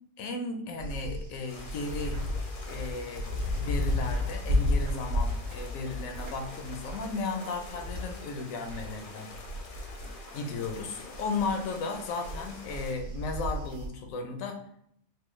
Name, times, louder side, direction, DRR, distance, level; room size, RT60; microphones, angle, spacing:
voice 1, 0.2-2.2 2.7-9.3 10.3-14.6, left 3 dB, 85° left, 3 dB, 1.0 m, -35 dB
sound 1, 0.8-9.0 9.3-13.9, left 1 dB, 85° right, 1.2 m, -33 dB
sound 2, 1.5-13.0, left 3 dB, 55° left, 0.6 m, -47 dB
4.5 x 2.0 x 3.1 m, 0.71 s
omnidirectional pair, 1.4 m